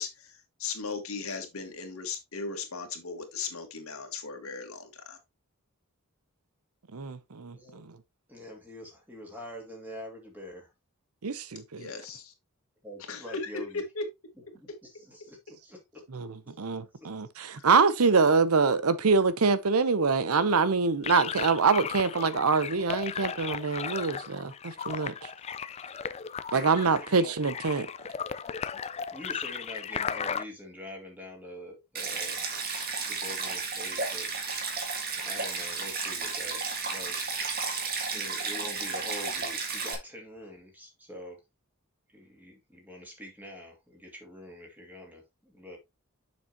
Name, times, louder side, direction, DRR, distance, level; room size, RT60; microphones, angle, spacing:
voice 1, 0.0-5.2 11.8-12.3 13.0-14.1 17.6-17.7 18.2-18.4, left 4 dB, 75° left, 1.9 m, -37 dB
voice 2, 6.9-7.9 11.2-11.9 16.1-25.1 26.5-27.9, right 4 dB, 90° right, 0.8 m, -25 dB
voice 3, 7.5-7.8 8.3-10.7 12.8-13.8 14.5-14.7 15.1-15.4 15.6-16.0 16.4-16.5 17.0-17.1 24.8-24.9 25.3-26.1 26.5-27.4 29.1-32.4 33.1-37.2 38.1-41.4 42.1-45.8, left 1 dB, 10° right, 2.5 m, -45 dB
sound 1, 21.0-30.4, left 6 dB, 30° left, 0.4 m, -36 dB
Stream, 32.0-40.0, right 4 dB, 45° right, 1.8 m, -33 dB
7.2 x 6.1 x 2.9 m
head